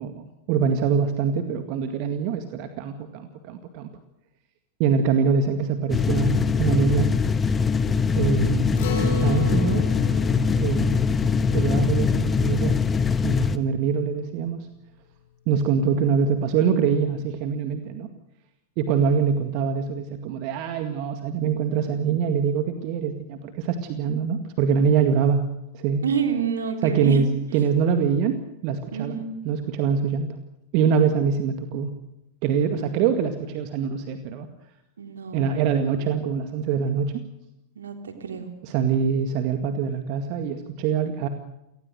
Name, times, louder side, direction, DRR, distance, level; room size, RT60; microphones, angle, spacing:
voice 1, 0.0-3.9 4.8-7.1 8.2-8.9 9.2-9.9 10.6-11.0 11.5-12.8 13.2-14.7 15.5-18.1 18.8-25.4 25.7-26.1 26.8-30.4 30.7-31.9 32.4-34.5 35.3-37.2 38.6-41.3, right 6 dB, 45° right, 8 dB, 2.0 m, -24 dB
sound 1, 5.9-13.6, left 5 dB, 20° left, 1.4 m, -22 dB
Acoustic guitar, 8.8-13.5, left 1 dB, 55° left, 5.4 m, -34 dB
voice 2, 26.0-27.4 28.9-29.3 35.0-35.6 37.8-38.5, right 7 dB, 70° right, 5 dB, 3.5 m, -28 dB
29.5 x 18.5 x 6.5 m, 0.88 s
figure-of-eight pair, 90°, 0 cm